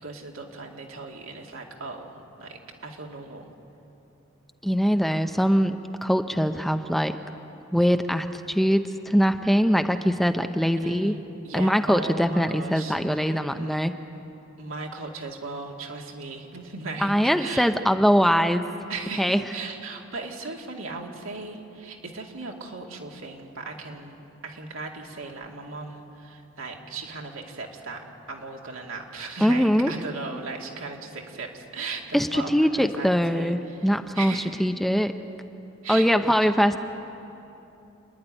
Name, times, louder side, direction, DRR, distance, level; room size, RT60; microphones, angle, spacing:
voice 1, 0.0-3.5 10.8-13.8 14.6-17.7 18.9-34.6 35.8-36.5, right 3 dB, 80° right, 0 dB, 2.4 m, -37 dB
voice 2, 4.6-7.2 7.7-11.2 11.5-13.9 17.0-18.6 19.2-19.4 29.4-29.9 32.1-34.3 34.6-35.2 35.9-36.8, equal, ahead, 7 dB, 0.5 m, -22 dB
28.5 x 10.5 x 9.9 m, 2.9 s
head